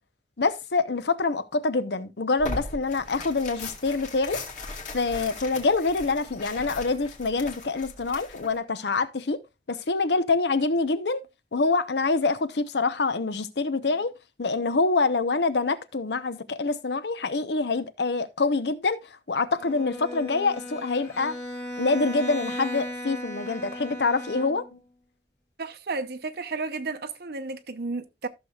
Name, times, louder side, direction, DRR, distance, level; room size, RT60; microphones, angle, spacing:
voice 1, 0.4-4.4 4.9-9.4 9.7-11.2 11.5-14.1 14.4-19.0 19.3-21.4 21.8-24.8, left 3 dB, 70° left, 0.8 m, -26 dB
Tearing, 2.4-8.6, left 2 dB, 45° left, 2.3 m, -38 dB
Bowed string instrument, 19.6-24.9, left 1 dB, 20° left, 1.9 m, -36 dB
voice 2, 25.6-28.3, right 3 dB, 60° right, 0.8 m, -32 dB
14.5 x 6.5 x 2.4 m
head